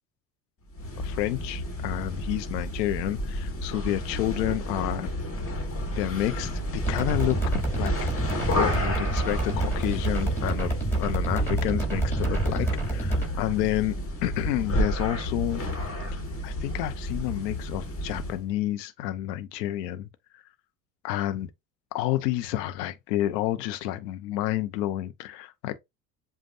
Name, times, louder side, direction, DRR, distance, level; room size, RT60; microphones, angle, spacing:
sound 1, 0.7-18.4, left 1 dB, 25° left, 1.8 m, -31 dB
voice 1, 1.0-5.1 5.9-8.1 8.5-14.0 14.2-15.6 16.4-20.1 20.3-20.4 21.0-21.5 21.9-25.8, left 14 dB, 75° left, 0.8 m, -30 dB
sound 2, 6.8-13.3, right 2 dB, 5° left, 3.3 m, -28 dB
7.6 x 2.5 x 2.6 m
hypercardioid pair, 70°, 50 cm